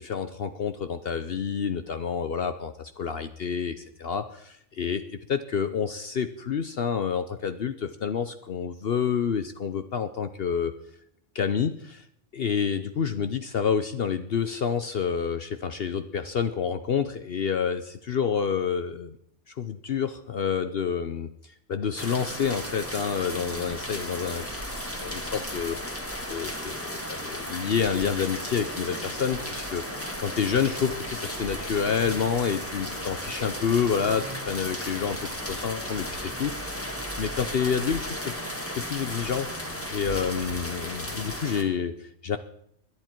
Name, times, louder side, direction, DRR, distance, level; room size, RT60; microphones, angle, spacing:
voice 1, 0.0-10.7 11.3-12.0 12.3-19.2 19.5-24.5 25.0-25.8 26.3-36.7 37.2-38.4 38.7-42.4, left 7 dB, 55° left, 10 dB, 0.9 m, -28 dB
sound 1, 22.0-41.6, equal, 10° left, 1.7 m, -35 dB
sound 2, 28.2-35.6, left 1 dB, 75° left, 4.4 m, -46 dB
20.5 x 11.0 x 4.5 m, 0.72 s
omnidirectional pair, 1.3 m